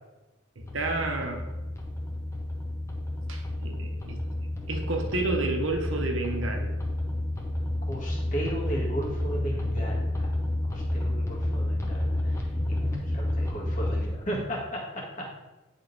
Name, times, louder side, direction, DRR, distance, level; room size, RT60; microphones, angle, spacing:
sound 1, 0.6-14.0, left 1 dB, 15° left, 0.7 m, -30 dB
voice 1, 0.6-1.5 3.3-4.2 4.7-6.8, right 2 dB, 80° right, 3 dB, 0.9 m, -30 dB
voice 2, 7.9-10.3 10.7-12.4 12.7-15.3, right 1 dB, 40° left, -3 dB, 1.6 m, -35 dB
9.0 x 3.9 x 4.0 m, 1.1 s
head